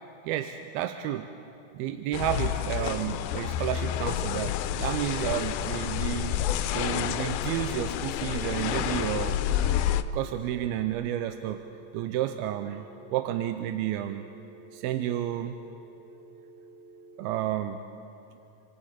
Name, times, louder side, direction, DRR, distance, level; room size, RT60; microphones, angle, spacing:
voice 1, 0.2-1.3 1.7-6.4 6.7-9.4 10.1-11.6 11.9-12.9 13.1-14.2 14.7-15.6 17.2-17.8, right 12 dB, 90° right, 7 dB, 2.6 m, -31 dB
sound 1, 2.1-10.0, left 11 dB, 80° left, 2.4 m, -29 dB
sound 2, 7.4-17.5, right 3 dB, 50° right, 3.1 m, -51 dB
28.5 x 25.5 x 4.4 m, 2.9 s
omnidirectional pair, 4.3 m